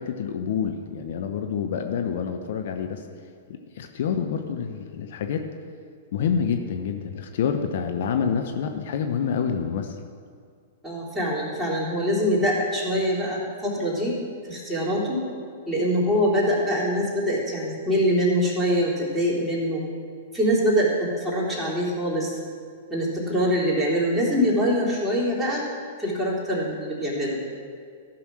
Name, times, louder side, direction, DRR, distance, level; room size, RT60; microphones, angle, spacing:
voice 1, 0.0-3.0 3.5-5.5 6.1-10.0, left 7 dB, 60° left, 5 dB, 0.8 m, -27 dB
voice 2, 10.8-14.1 14.4-15.2 15.7-19.8 20.3-22.4 22.9-25.6 26.0-27.5, equal, 5° right, -7 dB, 3.5 m, -24 dB
14.5 x 6.1 x 6.3 m, 2.2 s
figure-of-eight pair, 105°, 0 cm